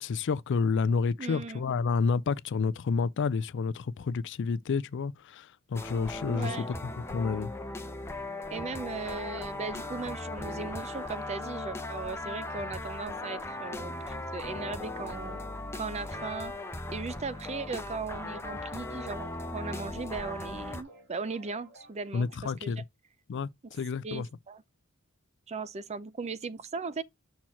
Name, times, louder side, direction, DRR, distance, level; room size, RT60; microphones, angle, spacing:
voice 1, 0.0-7.5 22.1-22.8 23.3-24.3, left 5 dB, 55° left, 0.4 m, -30 dB
voice 2, 1.2-1.6 6.3-6.7 8.5-15.4 15.7-16.5 16.9-22.7 24.0-24.6 25.5-27.0, right 4 dB, 30° right, 0.5 m, -38 dB
sound 1, 5.8-20.8, left 2 dB, 10° left, 0.8 m, -38 dB
sound 2, 14.5-22.5, right 1 dB, 60° right, 2.6 m, -55 dB
5.9 x 4.4 x 4.2 m
head